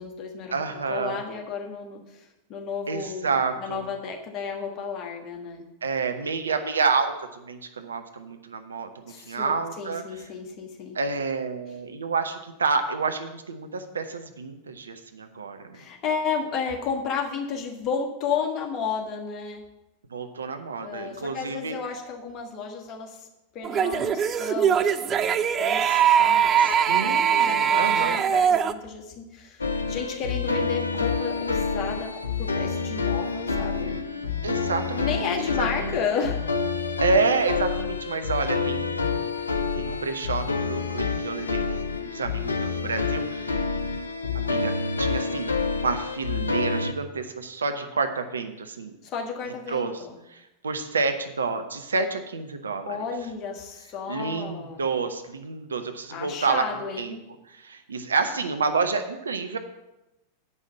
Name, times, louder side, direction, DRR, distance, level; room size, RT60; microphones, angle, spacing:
voice 1, 0.0-5.7 9.1-11.0 15.7-19.6 20.8-23.3 23.5-32.1 32.4-34.0 35.0-36.4 38.3-38.4 49.0-50.2 52.8-54.8 56.1-57.2, left 6 dB, 35° left, 1 dB, 1.5 m, -33 dB
voice 2, 0.5-1.2 2.9-3.8 5.8-10.0 10.9-15.8 20.1-21.8 26.6-28.2 34.4-35.3 35.6-35.7 37.0-39.3 39.8-43.5 44.3-45.5 45.8-48.9 49.7-50.0 50.3-53.0 54.1-56.6 57.0-57.1 57.5-59.6, right 4 dB, 70° right, 7 dB, 0.8 m, -29 dB
sound 1, 23.6-28.7, right 8 dB, 25° right, 0.4 m, -21 dB
sound 2, 29.6-46.9, left 4 dB, 75° left, 0.6 m, -28 dB
8.1 x 5.5 x 7.2 m, 0.93 s
figure-of-eight pair, 90°, 0 cm